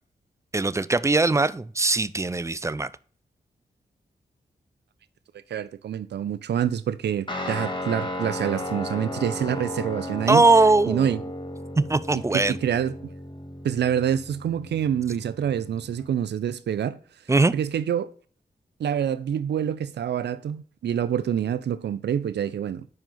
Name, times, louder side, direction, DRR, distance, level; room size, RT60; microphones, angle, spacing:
voice 1, 0.5-2.9 10.3-11.1 11.8-12.6 17.3-17.5, right 3 dB, 15° right, 0.4 m, -20 dB
voice 2, 5.5-10.5 10.9-11.2 12.3-12.9 13.6-17.0 17.5-18.1 18.8-22.9, right 9 dB, 80° right, 0.5 m, -26 dB
Guitar, 7.3-16.1, left 1 dB, 25° left, 1.8 m, -35 dB
5.3 x 4.8 x 3.7 m
cardioid pair, 45°, 17 cm